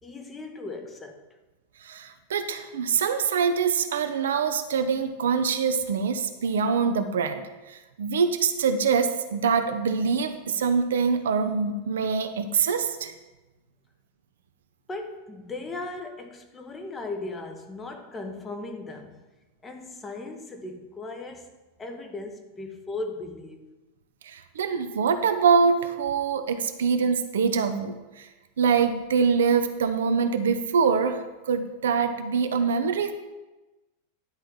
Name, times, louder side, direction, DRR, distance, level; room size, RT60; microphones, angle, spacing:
voice 1, 0.0-1.2 14.9-19.2 19.6-21.5 21.8-23.7, left 2 dB, 15° left, 1.1 m, -37 dB
voice 2, 1.8-13.1 24.2-28.3 28.6-33.1, right 6 dB, 60° right, 0.7 m, -24 dB
10.5 x 4.4 x 7.1 m
figure-of-eight pair, 90°, 0 cm